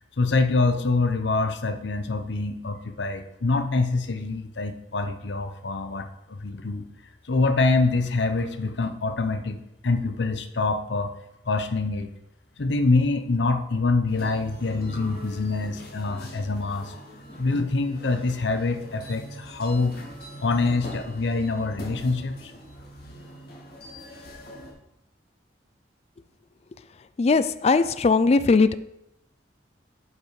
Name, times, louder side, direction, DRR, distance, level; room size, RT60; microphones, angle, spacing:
voice 1, 0.2-6.9 7.3-11.1 11.5-12.1 12.6-16.9 17.4-20.0 20.4-22.5, left 3 dB, 70° left, 9 dB, 0.8 m, -25 dB
sound 1, 14.1-24.7, equal, 55° left, 1.9 m, -42 dB
voice 2, 27.2-28.7, left 4 dB, 35° left, 14 dB, 0.3 m, -19 dB
7.8 x 5.7 x 4.8 m, 0.84 s
head